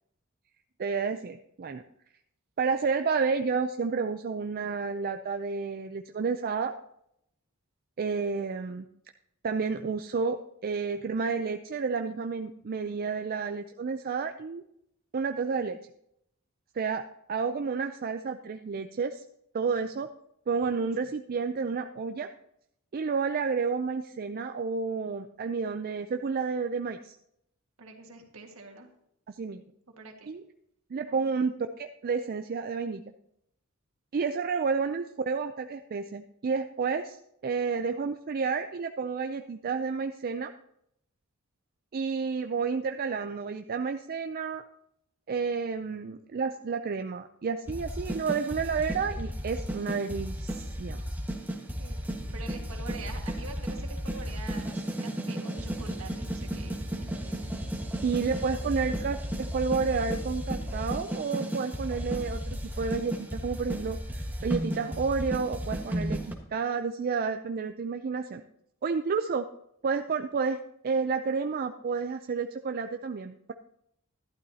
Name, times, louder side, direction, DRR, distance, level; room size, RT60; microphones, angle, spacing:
voice 1, 0.8-1.8 2.6-6.7 8.0-8.9 9.4-14.6 15.1-15.8 16.7-17.0 17.3-19.2 19.5-20.1 20.5-22.3 22.9-27.2 29.3-29.6 30.3-30.4 30.9-33.0 34.1-37.2 37.4-40.5 41.9-44.6 45.3-51.0 58.0-68.4 68.8-69.4 69.8-70.6 70.8-73.5, right 5 dB, 45° right, 7 dB, 0.4 m, -30 dB
voice 2, 27.8-28.9 30.0-30.3 31.1-31.3 51.8-57.5 58.6-59.2, right 3 dB, 70° right, 3 dB, 1.7 m, -46 dB
sound 1, 47.7-66.3, equal, 10° right, 1.4 m, -34 dB
12.0 x 11.5 x 2.8 m, 0.76 s
head